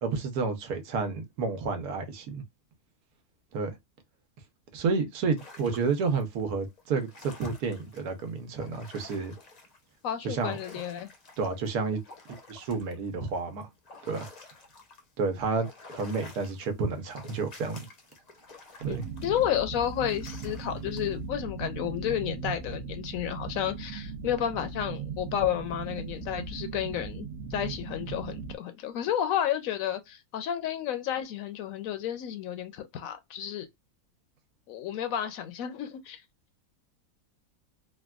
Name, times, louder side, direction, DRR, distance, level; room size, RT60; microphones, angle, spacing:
voice 1, 0.0-2.4 3.5-3.7 4.7-9.3 10.2-10.6 11.4-12.0 12.5-13.7 14.1-14.3 15.2-17.8 18.8-19.0, right 4 dB, 85° right, 1.3 m, -30 dB
sound 1, 5.4-6.2 6.8-9.8 10.1-15.1 15.4-21.1, left 3 dB, 40° left, 0.6 m, -51 dB
voice 2, 10.0-11.1 18.9-19.0 19.2-33.7 34.7-36.2, left 10 dB, 70° left, 1.0 m, -31 dB
sound 2, 18.8-28.6, right 5 dB, 60° right, 0.8 m, -38 dB
3.4 x 2.2 x 2.3 m
omnidirectional pair, 1.6 m